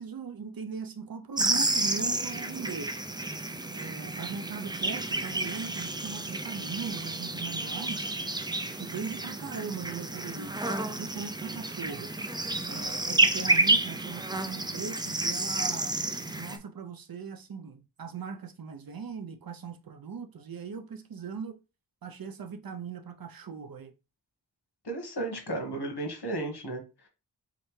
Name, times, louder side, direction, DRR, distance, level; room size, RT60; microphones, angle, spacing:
voice 1, 0.0-2.9 3.7-8.1 8.8-12.4 12.7-16.0 16.4-21.6 22.0-23.9, right 6 dB, 60° right, 0.6 m, -39 dB
sound 1, 1.4-16.6, right 2 dB, 10° right, 0.3 m, -30 dB
voice 2, 24.8-27.1, right 2 dB, 70° left, 1.3 m, -34 dB
3.8 x 3.3 x 3.1 m
wide cardioid pair, 85°, 41 cm